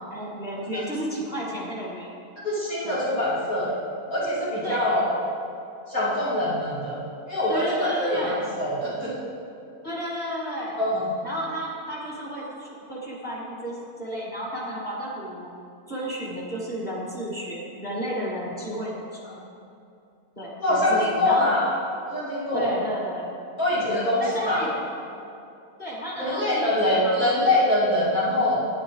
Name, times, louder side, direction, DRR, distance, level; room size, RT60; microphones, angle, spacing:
voice 1, 0.1-2.1 2.8-3.0 4.6-4.9 7.5-8.4 9.8-10.8 11.2-15.5 15.9-19.2 20.4-21.5 22.5-23.4 23.7-25.0 25.8-27.2, equal, 30° left, -4 dB, 2.3 m, -32 dB
voice 2, 2.4-3.7 4.1-5.0 5.9-7.0 7.3-9.1 10.8-11.1 19.2-19.3 20.6-21.6 22.1-22.7 23.6-24.6 26.2-28.6, left 1 dB, 65° left, -10 dB, 3.1 m, -24 dB
11.0 x 10.0 x 4.9 m, 2.7 s
omnidirectional pair, 1.6 m